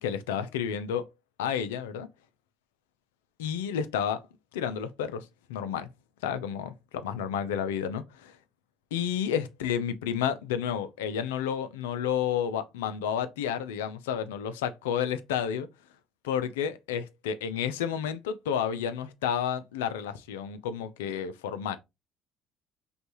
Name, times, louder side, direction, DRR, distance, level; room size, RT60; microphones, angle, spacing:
voice 1, 0.0-1.0 1.4-2.1 3.4-4.2 4.5-5.9 6.2-8.4 8.9-15.7 16.2-21.8, left 8 dB, 85° left, 0.5 m, -31 dB
5.2 x 2.4 x 2.9 m
hypercardioid pair, 65°, 0 cm